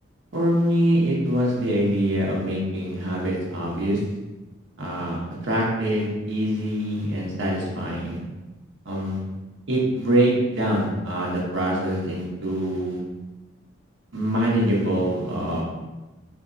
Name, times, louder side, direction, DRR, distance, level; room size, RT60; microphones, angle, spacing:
voice 1, 0.3-4.0 4.8-5.2 5.4-8.2 8.8-9.2 9.7-13.0 14.1-15.6, right 1 dB, 70° right, -4 dB, 0.9 m, -24 dB
3.5 x 2.9 x 2.6 m, 1.1 s
head